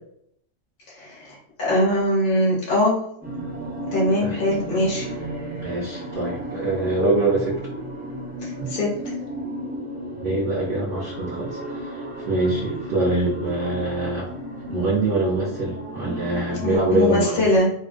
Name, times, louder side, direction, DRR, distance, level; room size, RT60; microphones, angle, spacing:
voice 1, 0.9-3.0 3.9-5.1 8.4-9.1 16.6-17.7, left 1 dB, 50° left, -5 dB, 0.9 m, -22 dB
sound 1, 3.2-16.8, right 1 dB, 15° right, 0.3 m, -34 dB
voice 2, 5.5-7.7 8.6-8.7 10.2-14.3 14.7-17.5, right 2 dB, 55° right, -5 dB, 0.7 m, -24 dB
2.4 x 2.1 x 2.4 m, 0.73 s
omnidirectional pair, 1.3 m